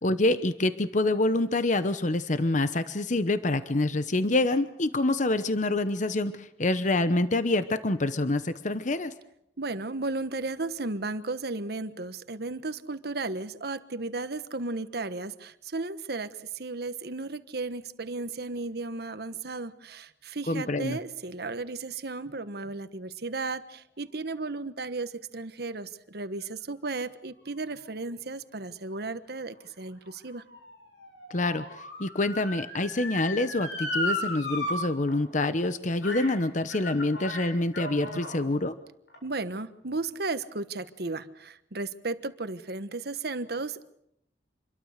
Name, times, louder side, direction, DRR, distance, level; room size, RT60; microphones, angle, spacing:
voice 1, 0.0-9.1 20.5-21.0 31.3-38.7, left 2 dB, 45° left, 11 dB, 1.0 m, -26 dB
voice 2, 9.6-30.4 38.0-38.2 39.2-43.9, right 3 dB, 60° right, 12 dB, 1.3 m, -34 dB
Motor vehicle (road) / Siren, 29.5-34.7 35.1-35.2 36.0-36.4 36.7-38.4 39.1-39.2, left 2 dB, 85° left, 7.8 m, -35 dB
27.5 x 22.5 x 6.6 m, 0.76 s
head